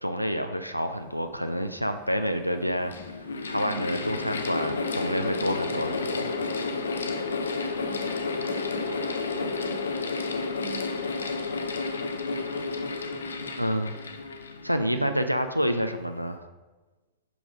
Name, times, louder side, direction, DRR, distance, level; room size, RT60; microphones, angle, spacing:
voice 1, 0.0-6.4 13.6-13.9 14.6-16.5, equal, 90° right, 8 dB, 0.3 m, -28 dB
Mechanical fan, 1.6-1.7 2.5-15.2, left 4 dB, 70° left, 0.5 m, -31 dB
voice 2, 3.6-4.0 7.8-10.0 10.6-11.4 14.9-15.2, right 10 dB, 45° right, 4 dB, 0.7 m, -45 dB
sound 1, 4.1-13.6, left 2 dB, 55° left, 1.2 m, -43 dB
5.2 x 4.7 x 5.0 m, 1.2 s
figure-of-eight pair, 90°, 0 cm